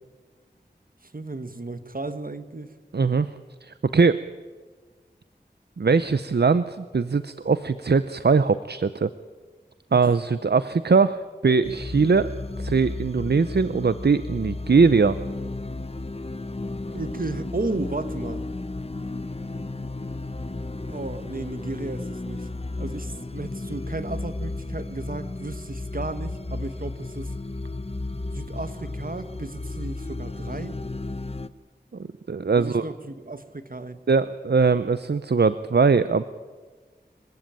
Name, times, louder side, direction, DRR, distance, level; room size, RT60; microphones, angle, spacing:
voice 1, 1.1-2.7 9.9-10.0 16.9-18.4 20.9-22.5 22.8-27.3 28.3-30.8 32.5-34.0, right 2 dB, 55° right, 11 dB, 1.4 m, -34 dB
voice 2, 2.9-3.3 3.6-4.2 5.8-9.1 9.9-12.3 12.6-15.2 32.3-32.8 34.1-36.2, right 4 dB, 70° right, 13 dB, 0.6 m, -21 dB
sound 1, 11.6-31.5, left 2 dB, 35° left, 0.8 m, -33 dB
25.5 x 15.5 x 9.0 m, 1.4 s
wide cardioid pair, 50°, 18 cm